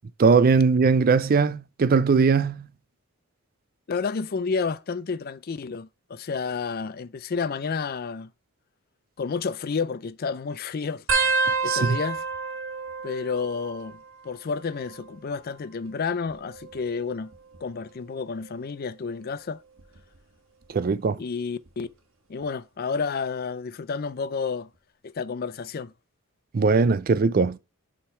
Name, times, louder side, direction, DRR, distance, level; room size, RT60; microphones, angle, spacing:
voice 1, 0.2-2.6 11.7-12.0 20.7-21.2 26.5-27.6, right 4 dB, 40° right, 0.4 m, -20 dB
voice 2, 3.9-8.3 9.2-11.1 11.6-12.2 13.0-17.3 17.6-19.6 21.2-21.9 22.3-24.7 25.0-25.9, left 5 dB, 40° left, 0.4 m, -30 dB
sound 1, 11.1-14.3 14.5-15.1 16.1-17.6 18.2-18.6 19.8-20.2 21.7-21.8, right 4 dB, 60° right, 1.4 m, -29 dB
6.8 x 3.7 x 4.3 m
head